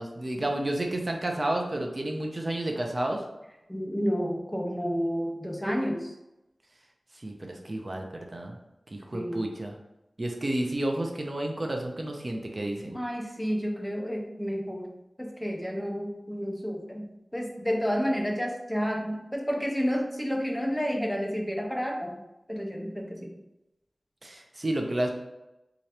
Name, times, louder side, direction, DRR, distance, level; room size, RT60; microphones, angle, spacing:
voice 1, 0.0-3.2 7.2-8.0 8.3-8.6 8.9-9.8 10.2-13.0 24.2-25.1, right 1 dB, 40° right, 2 dB, 0.5 m, -31 dB
voice 2, 3.7-6.1 9.1-9.5 12.9-14.9 15.2-17.1 17.3-22.2 22.5-23.3, equal, 5° left, 1 dB, 0.5 m, -30 dB
3.6 x 2.9 x 3.3 m, 0.94 s
wide cardioid pair, 75°, 0 cm